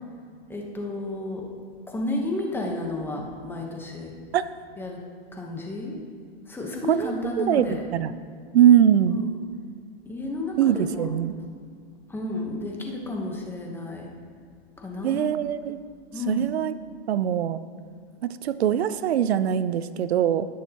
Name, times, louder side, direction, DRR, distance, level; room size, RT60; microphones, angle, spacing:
voice 1, 0.5-1.5 1.9-4.1 4.8-5.0 5.3-6.0 6.5-7.8 9.1-9.4 10.1-11.1 12.1-14.1 14.8-15.3 16.1-16.5, left 2 dB, 5° left, 0 dB, 1.0 m, -32 dB
voice 2, 6.9-7.7 7.9-8.1 8.5-9.2 10.6-11.3 15.0-15.8 16.3-16.7 17.1-17.6 18.2-20.5, right 10 dB, 90° right, 14 dB, 0.5 m, -22 dB
17.5 x 6.3 x 2.9 m, 2.1 s
hypercardioid pair, 140°, 31 cm